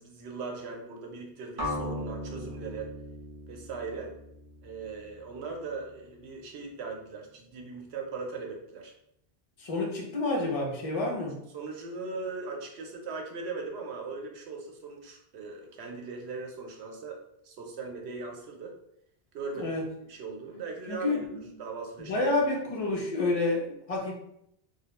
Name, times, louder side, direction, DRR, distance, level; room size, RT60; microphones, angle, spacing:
voice 1, 0.0-2.9 3.5-4.1 4.6-8.9 11.1-17.2 17.4-18.7 19.3-19.8 20.1-21.3 21.6-22.3, right 4 dB, 85° right, 1 dB, 0.9 m, -39 dB
sound 1, 1.6-5.5, left 1 dB, 30° right, 0.5 m, -38 dB
voice 2, 9.6-11.4 19.6-19.8 20.9-21.5 22.1-24.1, left 2 dB, 45° left, -2 dB, 0.5 m, -29 dB
2.2 x 2.1 x 2.9 m, 0.76 s
omnidirectional pair, 1.1 m